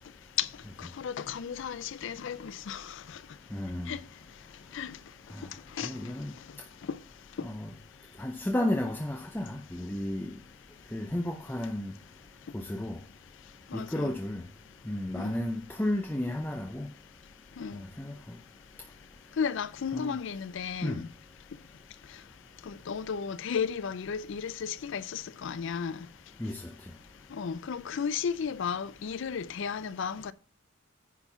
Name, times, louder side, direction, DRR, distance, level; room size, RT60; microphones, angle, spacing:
voice 1, 0.8-2.9 3.9-4.0 4.7-4.9 5.8-5.9 6.9-7.0 13.7-14.1 15.2-15.4 17.6-17.8 19.4-21.1 22.7-26.1 27.3-30.3, left 7 dB, 60° left, 0.4 m, -34 dB
voice 2, 3.5-3.9 5.3-5.5 5.8-6.3 7.4-7.7 8.2-10.3 10.9-11.9 12.5-13.0 13.7-14.4 14.9-16.9 17.7-18.1 19.9-20.1 20.8-21.0 26.4-26.7, left 1 dB, 10° left, 0.6 m, -32 dB
9.9 x 4.5 x 5.6 m
head